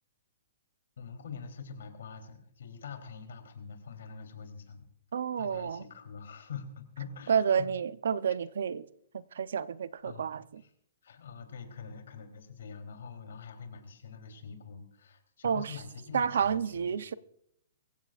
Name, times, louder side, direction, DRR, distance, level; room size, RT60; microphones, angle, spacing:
voice 1, 1.0-4.9 5.4-7.7 10.0-10.3 10.6-10.7 11.0-16.9, left 6 dB, 75° left, 3.5 m, -45 dB
voice 2, 5.1-5.8 7.3-8.9 9.1-10.6 15.4-15.7 16.1-17.1, right 7 dB, 75° right, 0.7 m, -30 dB
24.0 x 15.5 x 2.5 m
hypercardioid pair, 165°, 0 cm